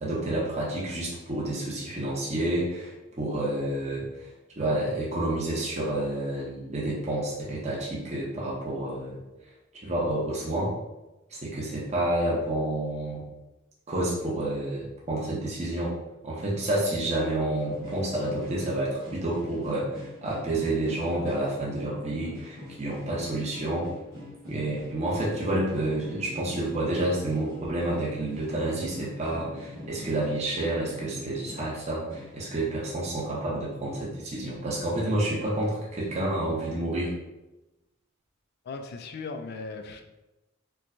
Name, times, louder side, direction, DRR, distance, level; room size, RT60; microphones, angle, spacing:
voice 1, 0.0-4.3 4.6-9.2 9.8-10.7 11.3-13.2 13.9-15.9 16.2-23.9 24.5-37.1, right 1 dB, 30° right, -5 dB, 0.7 m, -29 dB
sound 1, 17.6-31.8 32.1-32.4, left 1 dB, 90° right, 1.3 m, -43 dB
voice 2, 38.7-40.0, left 4 dB, 50° left, 6 dB, 0.3 m, -37 dB
4.4 x 2.2 x 2.6 m, 1.0 s
head